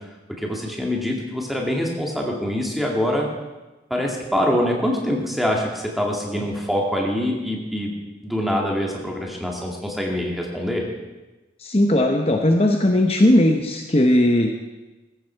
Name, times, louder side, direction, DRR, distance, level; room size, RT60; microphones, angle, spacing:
voice 1, 0.3-3.3 3.9-7.9 8.2-10.9, equal, ahead, -1 dB, 2.2 m, -24 dB
voice 2, 11.6-14.5, left 1 dB, 30° left, 3 dB, 0.9 m, -18 dB
15.0 x 14.0 x 4.6 m, 1.1 s
head